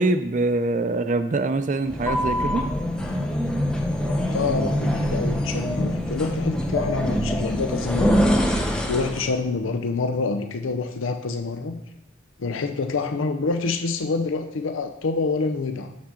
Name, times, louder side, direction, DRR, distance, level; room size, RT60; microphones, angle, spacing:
voice 1, 0.0-2.7, right 2 dB, 40° right, 11 dB, 0.4 m, -24 dB
sound 1, 1.9-9.4, equal, 5° left, 0.8 m, -24 dB
voice 2, 4.3-11.8 12.4-15.9, left 4 dB, 90° left, 7 dB, 0.6 m, -27 dB
8.7 x 7.1 x 3.7 m, 0.86 s
head